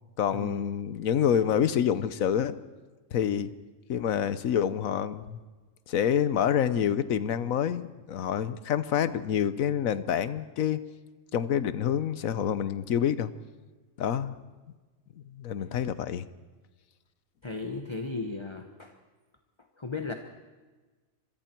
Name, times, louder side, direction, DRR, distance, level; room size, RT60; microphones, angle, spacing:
voice 1, 0.2-2.6 3.1-3.5 3.9-5.4 5.9-10.8 11.3-13.3 14.0-14.4 15.3-16.3, left 9 dB, 80° left, 14 dB, 1.3 m, -27 dB
voice 2, 17.4-19.0 19.8-20.1, left 3 dB, 20° left, 5 dB, 1.1 m, -35 dB
26.0 x 22.0 x 4.5 m, 1.3 s
omnidirectional pair, 1.4 m